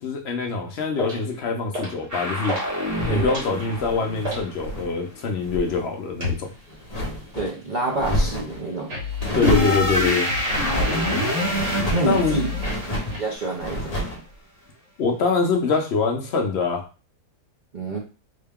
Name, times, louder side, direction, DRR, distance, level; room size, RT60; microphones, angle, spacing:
voice 1, 0.0-2.6 3.1-6.5 9.3-10.3 11.6-11.8 12.1-12.4 15.0-16.8, left 4 dB, 60° left, 2 dB, 0.7 m, -24 dB
sound 1, 1.0-1.3 1.7-2.1 2.4-2.7 3.0-4.5 6.2-6.4 8.9-13.3, left 2 dB, 75° right, 2.0 m, -31 dB
sound 2, 2.1-5.0 9.4-14.1, left 1 dB, 15° right, 0.9 m, -27 dB
sound 3, 2.9-4.9 5.3-5.8 6.2-7.5 7.9-8.6 9.2-9.9 10.5-11.0 11.5-12.1 12.6-13.2 13.6-14.2, equal, 30° left, 0.8 m, -29 dB
voice 2, 7.3-9.0 11.9-12.5 13.1-13.9 17.7-18.0, right 2 dB, 55° right, -3 dB, 0.5 m, -27 dB
3.6 x 2.2 x 3.5 m, 0.33 s
omnidirectional pair, 1.7 m